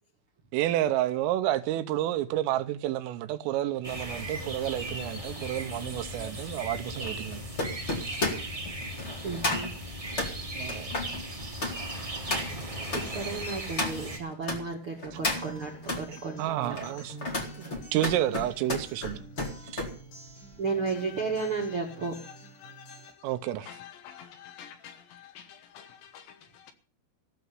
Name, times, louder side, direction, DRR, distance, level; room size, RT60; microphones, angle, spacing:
voice 1, 0.5-7.4 8.1-8.2 10.5-11.0 16.1-17.2 17.6-19.2 19.7-19.9 23.2-23.7, right 13 dB, 80° right, 3.4 m, -30 dB
sound 1, 3.8-14.2, right 1 dB, 30° right, 0.6 m, -37 dB
sound 2, 4.0-14.6 15.0-16.0 16.6-19.9 20.3-20.6, left 2 dB, 45° left, 0.8 m, -34 dB
voice 2, 9.2-9.7 12.9-16.9 20.6-22.2, right 4 dB, 55° right, 1.5 m, -33 dB
Acoustic guitar, 15.1-23.1, right 2 dB, 90° left, 8.8 m, -48 dB
voice 3, 20.7-26.7, left 9 dB, 70° left, 3.2 m, -49 dB
15.5 x 6.9 x 9.4 m
omnidirectional pair, 5.9 m